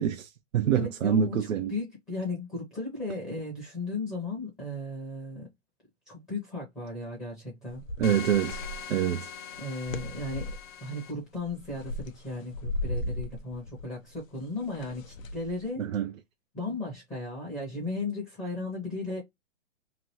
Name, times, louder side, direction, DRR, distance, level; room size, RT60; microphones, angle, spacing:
voice 1, 0.0-1.8 8.0-8.6 8.9-9.3 15.8-16.1, right 9 dB, 85° right, 0.6 m, -26 dB
voice 2, 0.7-5.5 6.1-7.8 9.6-10.5 10.8-15.8 16.5-19.2, left 2 dB, 5° left, 0.8 m, -35 dB
sound 1, 7.7-9.0 9.5-10.7 11.3-15.7, left 1 dB, 85° left, 0.8 m, -37 dB
sound 2, 8.0-11.1, left 8 dB, 40° left, 0.6 m, -41 dB
2.9 x 2.5 x 2.9 m
hypercardioid pair, 155°, 38 cm